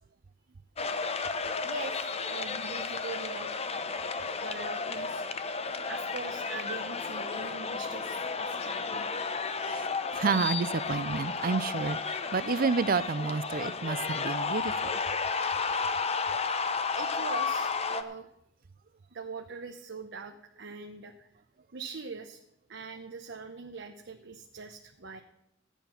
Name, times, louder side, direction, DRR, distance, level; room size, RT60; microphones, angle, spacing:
sound 1, 0.8-18.0, left 4 dB, 35° left, 0.8 m, -33 dB
voice 1, 1.6-3.5 4.4-5.2 5.9-9.1 15.5-15.9 16.9-18.3 19.0-21.3 21.7-22.4 22.7-25.2, right 4 dB, 65° right, 4 dB, 0.9 m, -42 dB
voice 2, 10.1-15.0, right 5 dB, 45° right, 17 dB, 0.5 m, -30 dB
14.5 x 9.2 x 5.9 m, 0.77 s
head